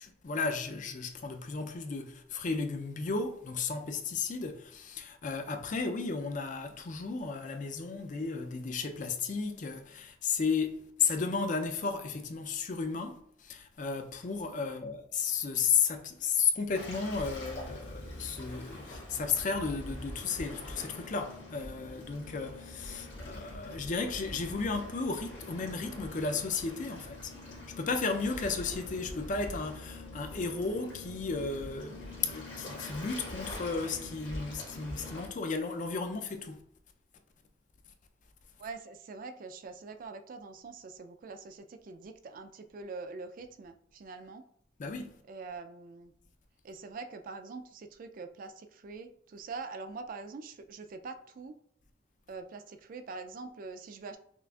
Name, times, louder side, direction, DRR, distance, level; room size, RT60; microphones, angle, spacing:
voice 1, 0.0-27.3 27.7-36.6 44.8-45.2, left 5 dB, 45° left, 0.4 m, -34 dB
Waves surf, 16.7-35.3, left 1 dB, 75° left, 1.4 m, -44 dB
voice 2, 38.6-44.5 45.3-46.1 46.6-51.6 52.3-54.2, right 4 dB, 50° right, 0.3 m, -44 dB
5.8 x 2.4 x 2.3 m
head